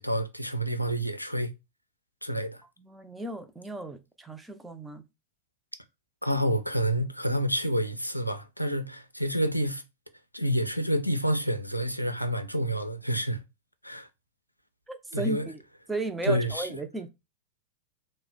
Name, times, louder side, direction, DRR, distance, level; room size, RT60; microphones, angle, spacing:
voice 1, 0.0-1.5 2.2-2.6 6.2-9.8 10.3-13.4 13.8-14.1 15.1-15.5 16.2-16.7, equal, 90° left, 0.4 m, -28 dB
voice 2, 2.8-5.0 14.9-15.6 15.9-17.1, right 2 dB, 10° right, 0.5 m, -35 dB
2.8 x 2.0 x 3.8 m
figure-of-eight pair, 90°, 0 cm